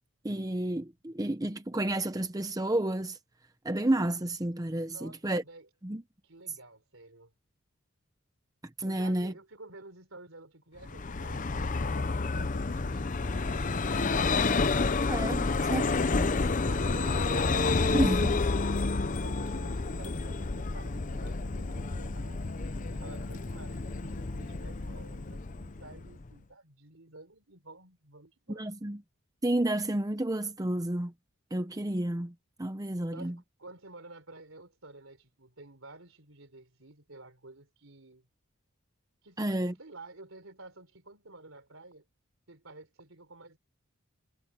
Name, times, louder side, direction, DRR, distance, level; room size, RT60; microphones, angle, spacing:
voice 1, 0.2-3.2 3.6-5.4 5.8-6.0 8.8-9.3 15.1-16.4 17.9-18.4 28.5-29.0 29.4-31.1 31.5-32.3 32.6-33.3 39.4-39.7, right 1 dB, 15° right, 0.7 m, -30 dB
voice 2, 4.9-5.7 6.2-7.3 8.8-11.4 11.8-15.6 16.6-18.9 19.2-22.4 22.8-28.7 33.1-38.3 39.2-42.0 42.5-43.6, right 2 dB, 70° right, 4.0 m, -51 dB
Vehicle, 10.8-26.3, left 3 dB, 35° left, 0.6 m, -30 dB
head